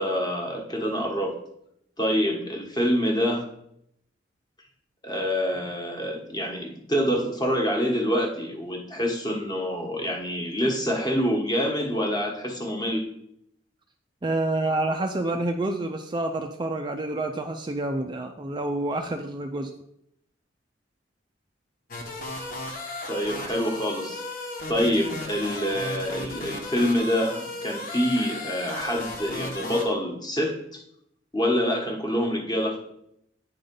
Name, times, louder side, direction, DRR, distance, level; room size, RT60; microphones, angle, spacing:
voice 1, 0.0-1.4 2.0-3.5 5.0-13.1 23.1-24.2 24.7-30.8 31.3-32.8, equal, 20° left, 1 dB, 1.2 m, -26 dB
voice 2, 14.2-19.7, right 2 dB, 25° right, 5 dB, 0.4 m, -28 dB
sound 1, 21.9-29.8, left 2 dB, 50° left, 1.2 m, -35 dB
8.9 x 3.8 x 5.3 m, 0.75 s
head